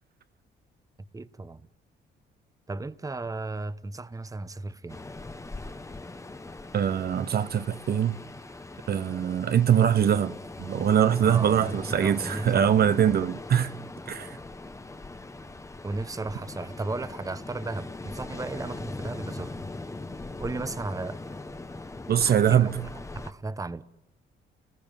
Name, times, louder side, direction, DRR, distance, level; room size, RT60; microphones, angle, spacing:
voice 1, 1.1-1.7 2.7-5.0 11.2-12.7 15.8-19.6 20.4-21.2 22.2-23.9, right 3 dB, 15° right, 1.0 m, -35 dB
Ocean, 4.9-23.3, left 2 dB, 15° left, 1.1 m, -40 dB
voice 2, 6.7-8.2 8.9-13.7 14.1-14.4 22.1-22.7, right 9 dB, 50° right, 0.9 m, -23 dB
29.5 x 20.5 x 9.1 m
cardioid pair, 90°, 20 cm